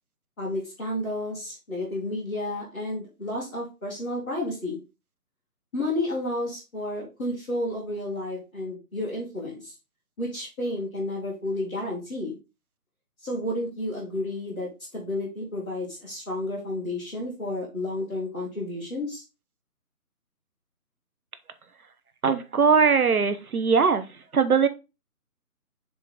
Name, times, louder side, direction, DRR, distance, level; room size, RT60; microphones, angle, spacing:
voice 1, 0.4-4.8 5.7-9.7 10.2-12.4 13.2-19.2, left 1 dB, 5° left, -10 dB, 1.0 m, -31 dB
voice 2, 22.2-24.0 24.3-24.7, right 5 dB, 70° right, 9 dB, 1.1 m, -20 dB
7.0 x 3.8 x 3.7 m, 0.27 s
figure-of-eight pair, 155°, 46 cm